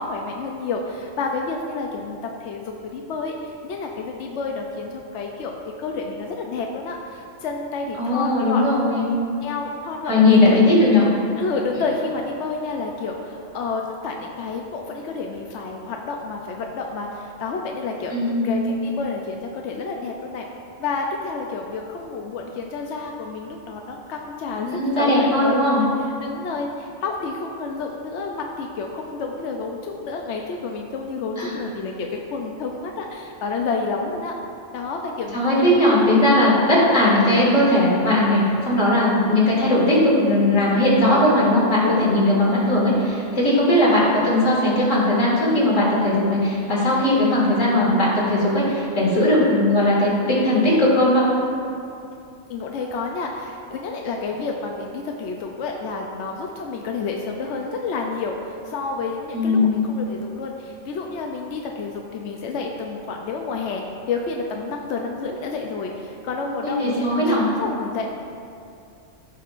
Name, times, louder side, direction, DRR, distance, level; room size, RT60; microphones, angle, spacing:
voice 1, 0.0-5.5 5.8-8.6 8.9-9.0 9.4-10.6 11.4-18.2 18.4-20.5 20.8-24.7 25.0-25.9 26.2-34.3 34.7-36.2 41.8-42.6 43.7-44.2 52.5-68.1, left 4 dB, 70° left, 1 dB, 0.9 m, -30 dB
voice 2, 8.0-9.0 10.1-11.0 18.1-18.6 24.7-25.8 31.4-31.5 35.3-51.3 59.3-59.8 66.6-67.4, left 1 dB, 85° left, -6 dB, 2.5 m, -18 dB
14.5 x 5.4 x 2.5 m, 2.5 s
omnidirectional pair, 1.3 m